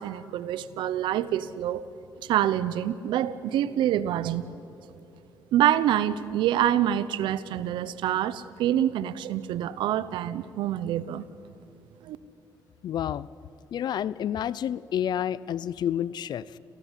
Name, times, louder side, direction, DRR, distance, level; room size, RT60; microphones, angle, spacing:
voice 1, 0.0-1.8 2.2-4.4 5.5-11.2 12.0-12.2, right 11 dB, 80° right, 16 dB, 0.9 m, -26 dB
voice 2, 12.8-13.3 13.7-16.6, left 10 dB, 65° left, 19 dB, 0.6 m, -29 dB
28.0 x 16.5 x 8.4 m, 2.7 s
cardioid pair, 85°, 8 cm